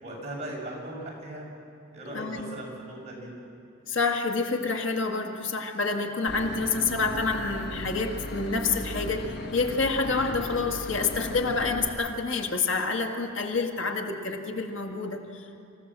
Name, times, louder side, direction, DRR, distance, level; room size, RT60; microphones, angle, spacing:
voice 1, 0.0-1.5 1.9-3.3, right 1 dB, 35° right, -4 dB, 7.0 m, -38 dB
voice 2, 2.1-2.6 3.9-15.4, left 4 dB, 70° left, 3 dB, 1.9 m, -28 dB
Boat Water vehicle / Engine, 6.3-11.9, left 1 dB, 55° left, 1.3 m, -36 dB
26.5 x 16.0 x 7.5 m, 2.7 s
head